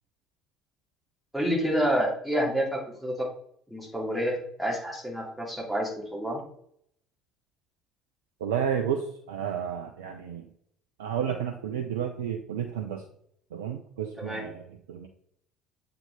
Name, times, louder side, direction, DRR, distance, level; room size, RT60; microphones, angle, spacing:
voice 1, 1.3-3.3 3.7-6.4 14.2-14.4, equal, 5° right, -3 dB, 2.4 m, -28 dB
voice 2, 8.4-10.5 11.0-13.0 13.5-15.1, right 8 dB, 70° right, 5 dB, 0.5 m, -31 dB
7.4 x 4.0 x 3.5 m, 0.66 s
figure-of-eight pair, 55°, 0 cm